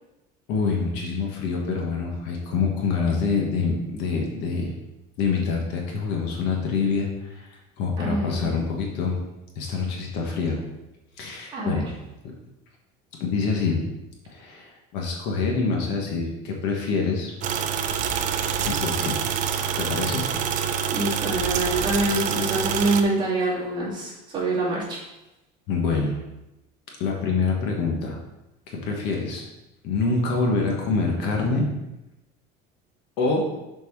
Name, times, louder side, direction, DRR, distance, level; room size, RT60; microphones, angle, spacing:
voice 1, 0.5-4.7 5.2-9.2 9.5-10.7 11.2-11.9 12.2-12.3 13.2-13.8 14.3-17.3 18.6-19.2 19.8-20.3 25.7-26.2 27.0-28.2 28.7-29.4 29.8-31.7 33.2-33.5, left 4 dB, 60° left, 0 dB, 1.4 m, -26 dB
voice 2, 8.0-8.5 11.5-11.8 20.9-25.0, right 2 dB, 25° right, -8 dB, 2.7 m, -25 dB
sound 1, 17.4-23.0, right 8 dB, 40° right, 0.5 m, -26 dB
7.0 x 4.5 x 4.6 m, 0.95 s
cardioid pair, 170°, 20 cm